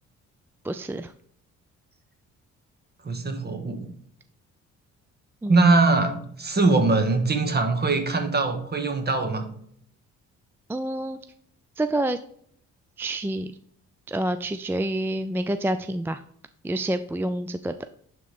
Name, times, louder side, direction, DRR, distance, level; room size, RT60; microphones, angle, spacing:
voice 1, 0.6-1.1 5.4-5.7 10.7-11.2 11.8-12.2 13.0-13.5 14.1-16.2 16.6-17.7, right 1 dB, 10° right, 9 dB, 0.3 m, -28 dB
voice 2, 3.0-3.9 5.5-9.4, right 3 dB, 35° right, 5 dB, 1.6 m, -22 dB
11.0 x 3.8 x 3.5 m, 0.65 s
cardioid pair, 90°, 30 cm